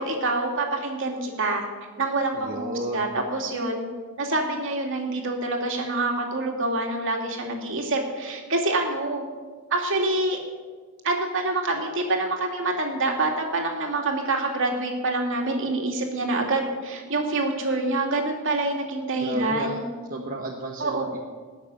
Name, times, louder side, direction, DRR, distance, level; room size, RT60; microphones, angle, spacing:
voice 1, 0.0-1.6 2.0-3.8 4.2-9.2 9.7-10.4 11.0-19.8 20.8-21.0, right 2 dB, 60° right, 2 dB, 2.7 m, -26 dB
voice 2, 2.3-3.1 19.2-19.8 20.1-21.2, right 2 dB, 40° right, -1 dB, 1.3 m, -33 dB
19.0 x 6.7 x 9.6 m, 1.4 s
head